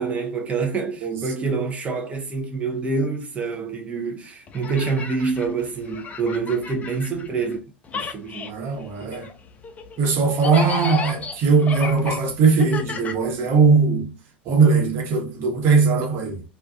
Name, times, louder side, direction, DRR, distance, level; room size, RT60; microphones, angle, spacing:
voice 1, 0.0-7.6 7.9-8.7 9.0-9.2, right 4 dB, 20° right, 0.5 m, -26 dB
voice 2, 1.0-1.3 8.4-9.3 10.0-14.1 14.4-16.4, right 4 dB, 45° right, 1.0 m, -19 dB
sound 1, 4.5-7.6 7.8-13.8, left 4 dB, 25° left, 0.5 m, -34 dB
2.3 x 2.3 x 2.4 m
hypercardioid pair, 85°, 6 cm